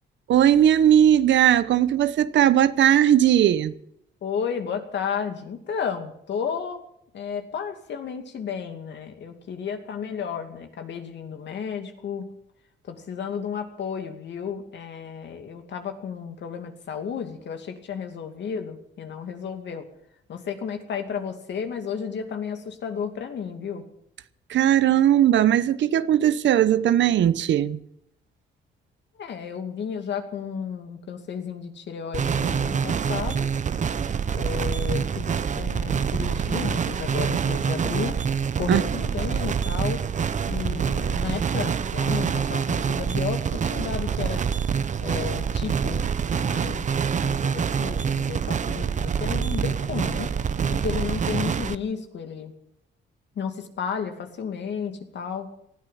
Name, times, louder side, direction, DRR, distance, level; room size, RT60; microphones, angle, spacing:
voice 1, 0.3-3.7 24.5-27.8 38.7-38.8, right 11 dB, 70° right, 0.9 m, -18 dB
voice 2, 4.2-6.8 7.1-12.3 12.9-19.9 20.3-23.8 29.1-33.5 34.3-38.2 38.6-40.0 40.5-44.4 45.0-46.9 47.2-50.3 50.7-52.5 53.4-55.5, left 7 dB, 65° left, 2.5 m, -33 dB
sound 1, 32.1-51.7, right 6 dB, 40° right, 0.8 m, -26 dB
19.5 x 13.0 x 5.7 m
cardioid pair, 90°, 20 cm